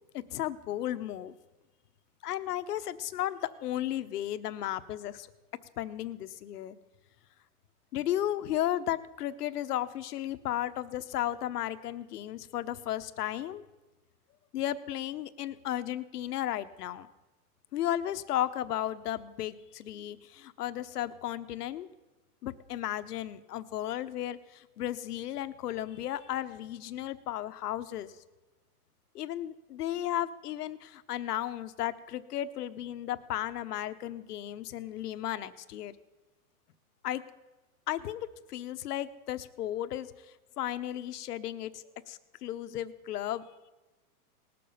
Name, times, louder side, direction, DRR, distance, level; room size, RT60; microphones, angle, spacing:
voice 1, 0.1-1.3 2.2-5.3 5.8-6.8 7.9-13.6 14.5-17.1 17.7-21.9 22.4-28.1 29.1-35.9 37.0-37.2 37.9-40.1 40.6-43.4, left 12 dB, 80° left, 11 dB, 0.9 m, -34 dB
19.0 x 6.9 x 5.5 m, 1.1 s
supercardioid pair, 155°, 46 cm